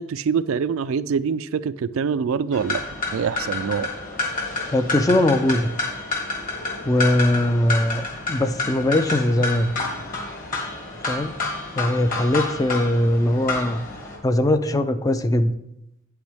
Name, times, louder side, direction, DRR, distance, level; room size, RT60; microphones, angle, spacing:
voice 1, 0.0-2.8 3.1-3.9, right 6 dB, 70° right, 0.3 m, -24 dB
sound 1, 2.5-14.2, left 3 dB, 40° left, 1.8 m, -29 dB
voice 2, 4.7-5.7 6.8-9.7 11.1-11.3 11.8-13.8 14.2-15.5, left 1 dB, 15° left, 0.4 m, -20 dB
8.6 x 7.9 x 3.5 m
head